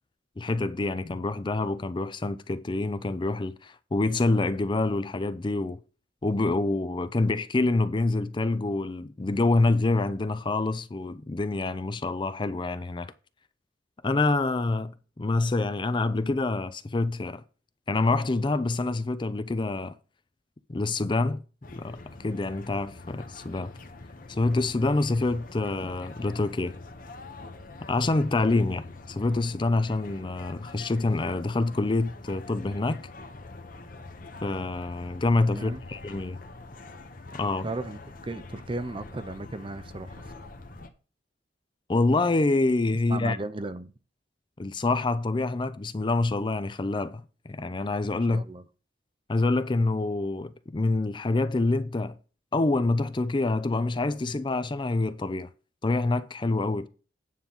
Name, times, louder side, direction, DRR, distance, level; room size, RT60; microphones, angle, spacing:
voice 1, 0.4-5.8 6.2-13.1 14.0-17.4 17.9-20.0 20.7-21.4 21.8-23.7 24.3-26.7 27.8-33.0 34.4-36.4 37.3-37.7 41.9-43.4 44.6-48.4 49.3-52.2 52.5-55.5 55.8-56.9, left 2 dB, 25° left, 0.5 m, -26 dB
sound 1, 21.6-40.9, left 2 dB, 50° left, 1.1 m, -45 dB
voice 2, 35.5-35.8 37.6-40.5 43.1-43.9 48.2-48.6, right 2 dB, 30° right, 0.6 m, -36 dB
9.4 x 3.9 x 7.0 m
head